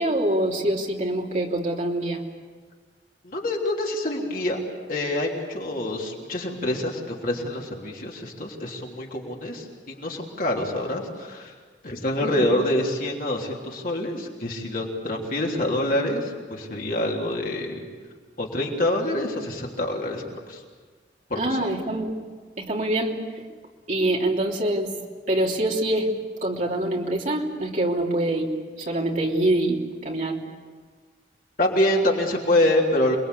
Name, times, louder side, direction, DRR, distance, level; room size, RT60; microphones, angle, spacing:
voice 1, 0.0-2.2 12.2-12.5 21.3-22.1 22.6-23.5 23.9-24.9 25.3-26.1 26.4-28.5 28.8-30.4, right 1 dB, 40° right, -1 dB, 3.2 m, -25 dB
voice 2, 3.2-4.6 4.9-11.5 11.8-17.8 18.4-20.6 21.3-21.6 31.6-33.2, left 1 dB, 50° left, -1 dB, 3.4 m, -26 dB
28.0 x 21.0 x 8.4 m, 1.5 s
head